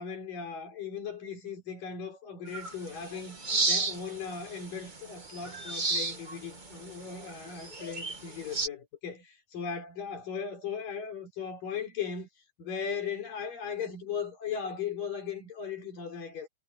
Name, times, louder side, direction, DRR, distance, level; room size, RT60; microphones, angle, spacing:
voice 1, 0.0-9.3 9.5-12.3 12.6-16.5, left 6 dB, 60° left, 6.6 m, -37 dB
sound 1, 2.5-8.7, right 3 dB, 40° right, 0.6 m, -34 dB
omnidirectional pair, 4.4 m